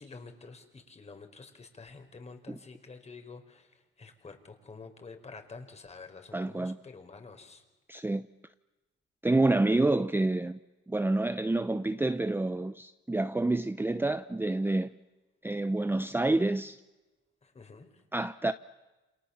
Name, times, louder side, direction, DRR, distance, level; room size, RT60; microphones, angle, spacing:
voice 1, 0.0-3.7 4.0-7.6 17.4-17.9, left 4 dB, 35° left, 5.0 m, -48 dB
voice 2, 6.3-6.8 7.9-8.3 9.2-10.6 10.9-14.9 15.4-16.8 18.1-18.5, right 2 dB, 10° right, 0.9 m, -28 dB
29.5 x 28.0 x 7.3 m
cardioid pair, 90°, 20 cm